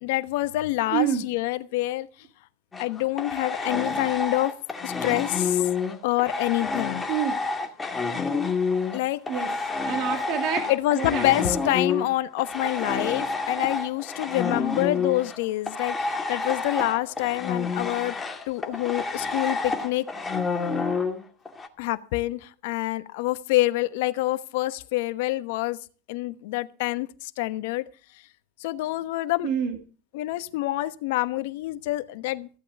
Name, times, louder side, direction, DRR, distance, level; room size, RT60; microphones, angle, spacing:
voice 1, 0.0-2.1 2.8-4.6 4.8-5.6 6.0-7.1 8.9-9.2 10.7-18.1 18.5-20.1 21.8-25.8 26.1-27.9 28.6-29.5 30.1-32.5, left 17 dB, 65° left, 1.1 m, -27 dB
voice 2, 0.9-1.3 7.1-7.4 9.3-9.5 9.8-11.5 29.4-29.8, right 9 dB, 50° right, 2.4 m, -28 dB
sound 1, 2.7-9.0 9.3-21.7, left 4 dB, 15° left, 2.2 m, -29 dB
15.0 x 8.3 x 6.6 m
hypercardioid pair, 110°, 0 cm